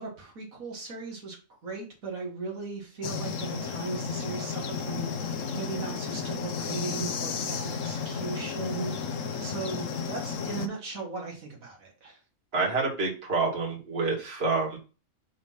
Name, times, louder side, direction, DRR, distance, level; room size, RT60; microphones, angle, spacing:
voice 1, 0.0-1.4 1.6-12.2, right 4 dB, 90° right, -1 dB, 2.2 m, -37 dB
sound 1, 3.0-10.7, left 6 dB, 70° left, 1.1 m, -33 dB
voice 2, 12.5-14.8, right 3 dB, 50° right, -3 dB, 2.2 m, -27 dB
6.4 x 3.1 x 5.6 m, 0.34 s
omnidirectional pair, 1.4 m